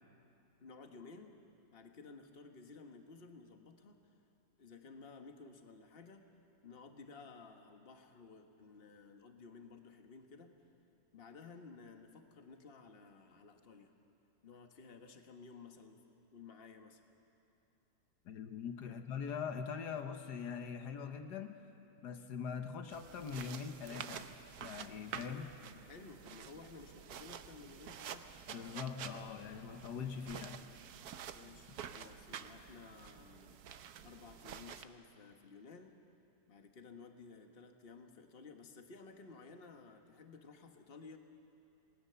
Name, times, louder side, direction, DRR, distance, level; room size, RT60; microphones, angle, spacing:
voice 1, 0.6-1.4 1.7-4.1 4.6-6.2 6.6-10.5 11.1-13.9 14.4-16.0 16.3-17.0 18.9-19.0 25.2-28.2 31.3-33.6 34.0-36.0 36.5-41.2, left 4 dB, 40° left, 5 dB, 1.5 m, -55 dB
voice 2, 18.2-21.6 22.0-24.3 24.6-25.5 28.5-30.7, left 6 dB, 85° left, 6 dB, 1.6 m, -42 dB
sound 1, 22.9-34.9, right 8 dB, 70° right, 1.3 m, -49 dB
27.5 x 19.5 x 6.9 m, 2.7 s
omnidirectional pair, 1.7 m